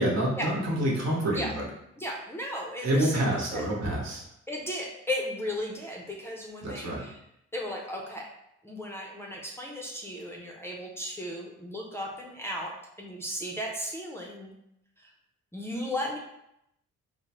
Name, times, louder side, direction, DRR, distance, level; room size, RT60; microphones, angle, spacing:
voice 1, 0.0-1.7 2.8-4.2 6.6-7.0, right 1 dB, 60° right, -3 dB, 1.2 m, -27 dB
voice 2, 2.0-3.2 3.5-3.6 4.5-7.1 7.5-8.2 8.6-12.7 13.0-14.5 15.5-16.2, left 1 dB, 10° left, -2 dB, 0.6 m, -35 dB
4.3 x 2.1 x 3.0 m, 0.79 s
cardioid pair, 90°, 30 cm